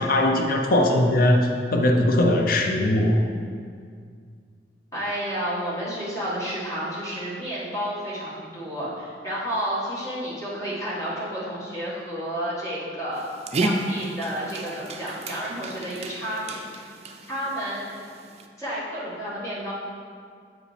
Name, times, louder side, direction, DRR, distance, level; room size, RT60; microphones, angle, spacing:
voice 1, 0.0-3.2, left 1 dB, 55° left, 2 dB, 0.6 m, -20 dB
voice 2, 4.9-13.2 13.6-16.6 17.3-17.9 18.6-19.7, equal, 20° left, -9 dB, 1.7 m, -31 dB
Dog, 13.1-18.5, right 2 dB, 35° right, 0.4 m, -32 dB
7.6 x 4.9 x 3.3 m, 2.2 s
head